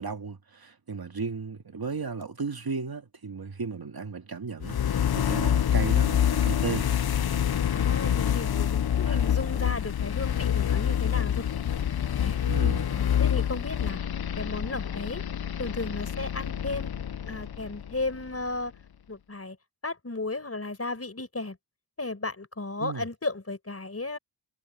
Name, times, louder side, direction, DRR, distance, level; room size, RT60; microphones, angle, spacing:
voice 1, 0.0-6.9 9.1-9.3 12.4-12.9 22.8-23.1, right 4 dB, 60° right, 2.2 m, -35 dB
sound 1, 4.6-18.5, left 9 dB, 60° left, 0.7 m, -27 dB
voice 2, 7.7-11.5 12.2-12.4 12.9-14.0 14.4-15.2 15.6-16.9 17.2-18.7 19.1-19.6 19.8-21.6 22.0-24.2, left 2 dB, 35° left, 5.4 m, -34 dB
wide cardioid pair, 85°, 42 cm